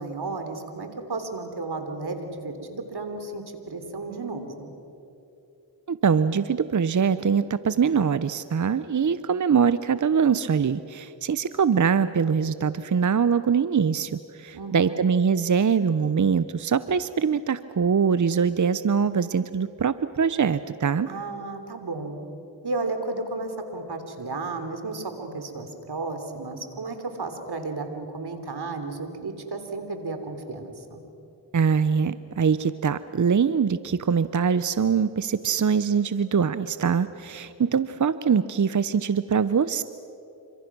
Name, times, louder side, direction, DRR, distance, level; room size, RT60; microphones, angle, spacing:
voice 1, 0.0-4.7 14.5-15.0 21.1-22.2 22.6-31.0, right 3 dB, 65° right, 6 dB, 3.4 m, -33 dB
voice 2, 5.9-21.1 31.5-39.8, right 6 dB, 45° right, 14 dB, 0.8 m, -23 dB
28.0 x 25.5 x 6.1 m, 2.9 s
cardioid pair, 40°, 42 cm